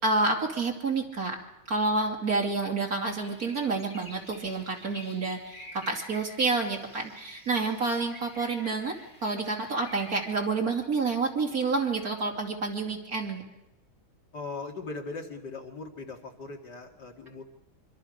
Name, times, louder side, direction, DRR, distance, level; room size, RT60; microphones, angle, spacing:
voice 1, 0.0-1.4 1.7-8.9 9.2-13.4, right 3 dB, 45° right, 0 dB, 3.2 m, -29 dB
sound 1, 3.0-10.3, left 1 dB, 20° left, 4.9 m, -49 dB
voice 2, 14.3-17.4, left 3 dB, 55° left, 1 dB, 2.6 m, -39 dB
25.0 x 25.0 x 5.2 m, 0.94 s
omnidirectional pair, 2.2 m